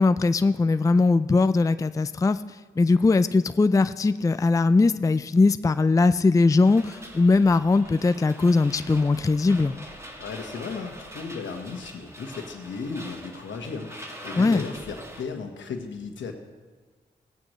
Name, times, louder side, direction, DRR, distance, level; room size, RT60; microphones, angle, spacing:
voice 1, 0.0-2.4 2.8-9.7 14.4-14.6, left 3 dB, 15° left, 13 dB, 0.4 m, -20 dB
sound 1, 6.6-15.2, equal, 15° right, 2.3 m, -43 dB
voice 2, 10.2-16.3, left 4 dB, 75° left, 5 dB, 1.4 m, -35 dB
17.0 x 8.9 x 3.2 m, 1.4 s
supercardioid pair, 45°, 19 cm